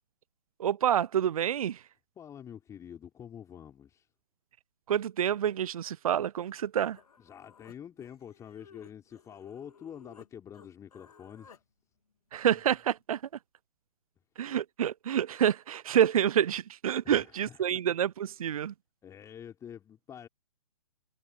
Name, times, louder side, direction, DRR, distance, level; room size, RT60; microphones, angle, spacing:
voice 1, 0.6-1.8 4.9-7.0 12.3-13.2 14.4-18.7, right 9 dB, 65° right, 0.5 m, -28 dB
voice 2, 2.2-4.1 7.2-11.6 17.0-17.7 19.0-20.3, left 9 dB, 15° left, 5.2 m, -47 dB
Human voice, 6.6-6.7 6.9-10.3 10.5-11.6, left 6 dB, 70° left, 2.5 m, -57 dB
figure-of-eight pair, 125°, 20 cm